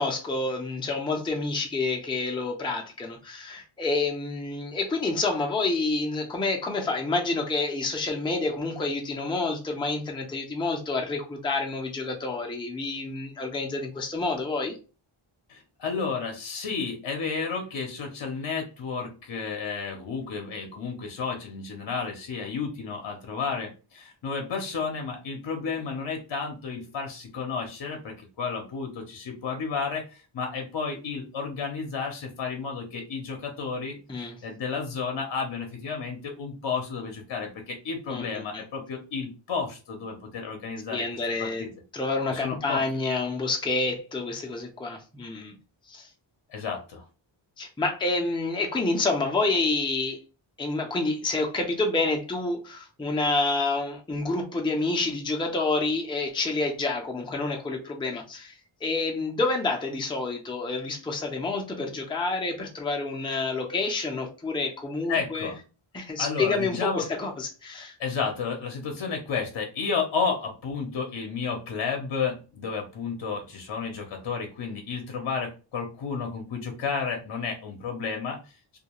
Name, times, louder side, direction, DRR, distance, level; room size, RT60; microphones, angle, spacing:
voice 1, 0.0-14.7 34.1-34.4 38.1-38.2 38.5-38.6 40.9-41.6 41.9-45.5 45.9-46.1 47.6-50.2 50.6-58.6 58.8-65.5 65.9-67.9, left 3 dB, 10° left, 1 dB, 0.5 m, -28 dB
voice 2, 15.5-34.0 34.4-41.0 41.4-41.7 42.3-42.8 46.5-47.0 65.1-65.6 66.2-67.0 68.0-78.6, left 5 dB, 60° left, 3 dB, 0.7 m, -32 dB
2.4 x 2.2 x 2.9 m, 0.33 s
wide cardioid pair, 90°, 49 cm